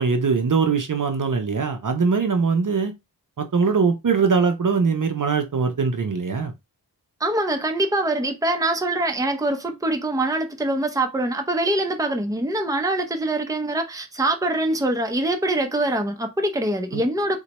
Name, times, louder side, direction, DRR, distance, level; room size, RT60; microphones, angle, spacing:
voice 1, 0.0-2.9 3.4-6.5 16.9-17.1, right 5 dB, 50° right, 0.6 m, -21 dB
voice 2, 7.2-17.4, right 1 dB, 10° right, 0.6 m, -24 dB
3.9 x 2.2 x 2.9 m
wide cardioid pair, 55°, 41 cm